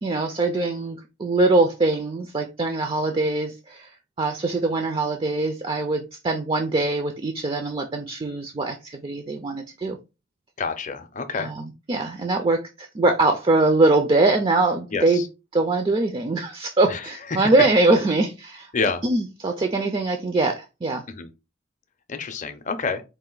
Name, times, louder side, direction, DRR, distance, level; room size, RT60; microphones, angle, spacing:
voice 1, 0.0-10.0 11.4-15.2 15.5-18.7 19.0-21.0, right 2 dB, 25° right, 0.4 m, -22 dB
voice 2, 10.6-11.5 14.9-15.3 16.9-17.0 17.3-17.5 18.7-19.0 21.1-21.3 22.1-23.0, left 4 dB, 35° left, 0.5 m, -28 dB
4.2 x 2.5 x 3.8 m
head